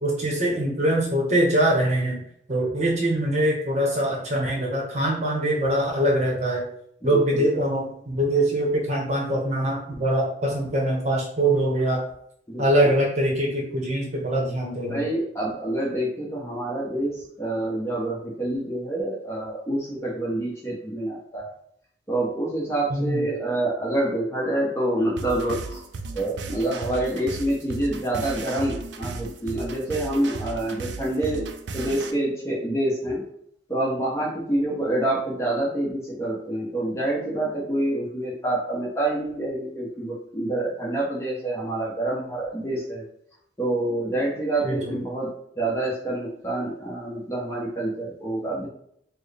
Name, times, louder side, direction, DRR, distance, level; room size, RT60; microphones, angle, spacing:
voice 1, 0.0-2.2 2.5-6.6 7.0-12.0 12.6-15.1 22.9-23.2 44.6-45.0, right 1 dB, 40° right, -1 dB, 0.9 m, -23 dB
voice 2, 7.0-7.5 12.5-12.9 14.9-21.5 22.1-25.8 26.1-31.5 31.7-33.3 33.7-43.0 43.6-48.7, right 1 dB, 15° left, -4 dB, 0.9 m, -27 dB
sound 1, 25.2-32.1, right 3 dB, 80° right, 0.4 m, -35 dB
4.3 x 2.1 x 3.4 m, 0.69 s
head